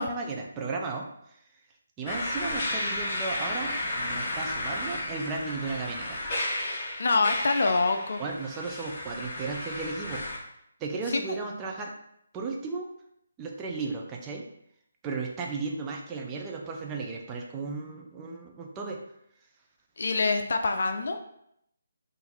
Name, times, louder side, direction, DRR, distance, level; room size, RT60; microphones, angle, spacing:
voice 1, 0.0-1.4 2.0-6.2 8.2-10.2 10.8-11.9 12.3-12.9 13.4-14.4 15.0-19.0, right 4 dB, 15° right, 0 dB, 0.5 m, -35 dB
sound 1, 2.1-10.4, left 1 dB, 40° left, 1.2 m, -33 dB
voice 2, 7.0-8.2 20.0-21.2, left 3 dB, 60° left, 6 dB, 0.4 m, -25 dB
3.7 x 2.6 x 4.4 m, 0.75 s
figure-of-eight pair, 145°, 0 cm